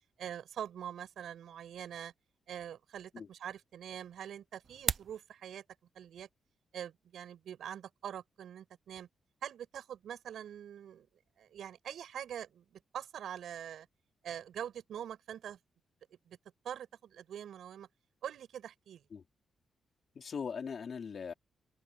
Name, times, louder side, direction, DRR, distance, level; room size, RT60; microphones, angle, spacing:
voice 1, 0.2-2.1 2.5-5.6 6.0-6.3 6.7-9.1 9.4-11.1 11.4-13.9 14.2-15.6 16.3-16.4 16.6-17.9 18.2-19.0, right 9 dB, 70° right, 7.2 m, -44 dB
sound 1, 4.6-5.2, right 6 dB, 35° right, 0.5 m, -34 dB
voice 2, 20.1-21.3, left 6 dB, 40° left, 4.1 m, -40 dB
wide cardioid pair, 175°, 0 cm